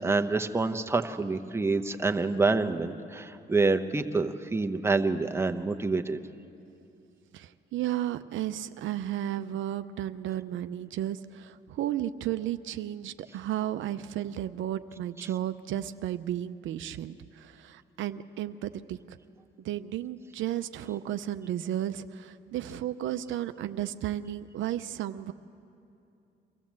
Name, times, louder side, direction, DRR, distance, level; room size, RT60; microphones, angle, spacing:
voice 1, 0.0-6.2 15.2-15.3, right 3 dB, 10° right, 6 dB, 0.9 m, -27 dB
voice 2, 7.3-19.2 19.6-25.3, right 12 dB, 75° right, 11 dB, 0.6 m, -33 dB
24.5 x 14.5 x 7.4 m, 2.7 s
cardioid pair, 90°, 20 cm